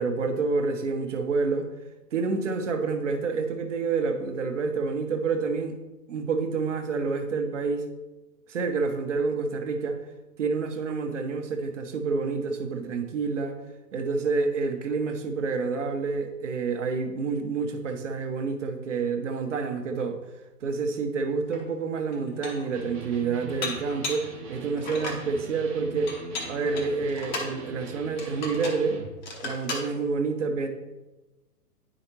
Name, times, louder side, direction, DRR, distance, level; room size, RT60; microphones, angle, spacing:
voice 1, 0.0-1.7 2.1-5.8 6.1-7.9 8.5-10.0 10.4-13.6 13.9-20.2 20.6-26.1 26.4-29.0 29.4-30.7, right 4 dB, 50° right, 5 dB, 1.0 m, -28 dB
Dishes pots and pans, 21.5-21.6 22.1-22.7 23.6-24.3 24.8-25.3 26.1-27.6 28.2-28.9 29.2-29.9, left 2 dB, 30° left, 0.9 m, -35 dB
Electric guitar, 22.7-29.1, right 3 dB, 15° right, 0.8 m, -42 dB
9.5 x 5.0 x 2.9 m, 1.1 s
figure-of-eight pair, 125°, 48 cm